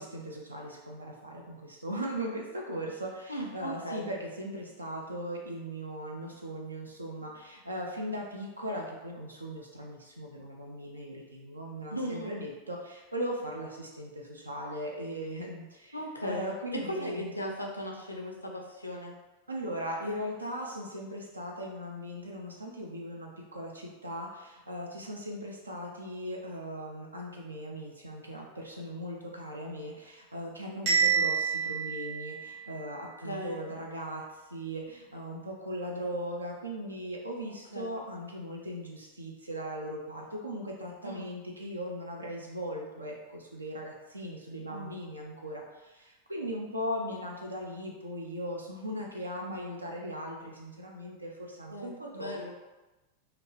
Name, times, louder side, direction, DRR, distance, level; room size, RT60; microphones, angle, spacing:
voice 1, 0.0-16.0 16.2-17.3 19.5-34.2 34.5-52.5, equal, 80° right, -1 dB, 0.4 m, -38 dB
voice 2, 3.3-4.1 11.9-12.4 15.9-19.1 33.2-33.6 37.4-38.0 41.0-41.3 44.7-44.9 51.7-52.5, equal, 85° left, 0 dB, 0.5 m, -37 dB
Bell, 30.9-32.9, right 6 dB, 60° right, 1.3 m, -28 dB
2.9 x 2.4 x 3.0 m, 1.1 s
figure-of-eight pair, 90°, 0 cm